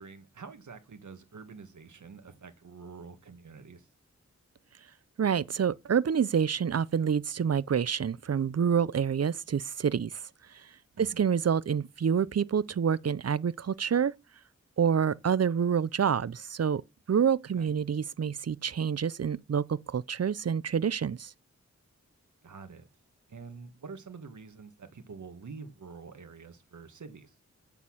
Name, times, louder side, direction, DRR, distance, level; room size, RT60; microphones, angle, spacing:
voice 1, 0.0-3.9 10.9-11.3 17.6-17.7 22.4-22.9 23.3-27.4, right 5 dB, 85° right, 1.8 m, -47 dB
voice 2, 5.2-10.2 11.0-14.1 14.8-16.8 17.1-21.3, right 7 dB, 60° right, 0.7 m, -27 dB
8.3 x 7.0 x 7.3 m
wide cardioid pair, 65°, 29 cm